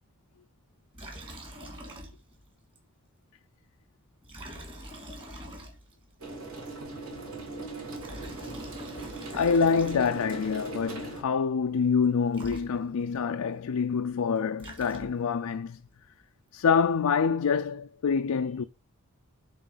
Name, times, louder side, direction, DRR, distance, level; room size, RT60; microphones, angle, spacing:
Liquid, 0.9-2.5 2.8-2.9 4.2-6.1 7.8-10.4 12.0-12.1 12.3-13.2 14.3-15.4, equal, 25° right, 2.1 m, -44 dB
sound 1, 6.2-11.2, right 3 dB, 80° right, 2.6 m, -40 dB
sound 2, 8.1-11.7, right 1 dB, 40° right, 3.7 m, -50 dB
voice 1, 9.3-15.8 16.5-18.6, left 6 dB, 90° left, 0.4 m, -26 dB
8.3 x 3.7 x 3.9 m
head